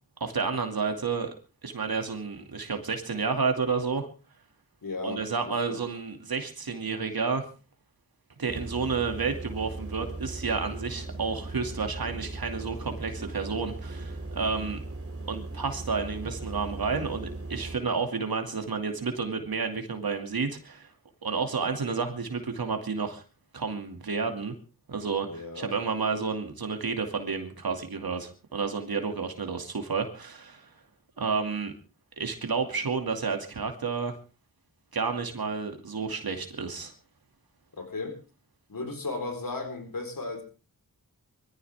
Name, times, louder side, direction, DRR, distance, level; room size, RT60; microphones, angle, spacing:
voice 1, 0.2-1.3 1.6-4.1 5.0-7.4 8.4-14.8 15.3-20.9 21.2-23.2 23.5-24.5 24.9-30.7 31.2-31.7 32.2-34.2 34.9-36.9, right 5 dB, 75° right, 5 dB, 2.6 m, -30 dB
voice 2, 4.8-5.8 25.2-25.8 37.7-38.2 38.7-40.4, left 3 dB, 65° left, 5 dB, 4.3 m, -35 dB
sound 1, 8.5-17.8, right 2 dB, 40° right, 2.9 m, -38 dB
22.0 x 15.0 x 3.6 m, 0.35 s
cardioid pair, 55°, 37 cm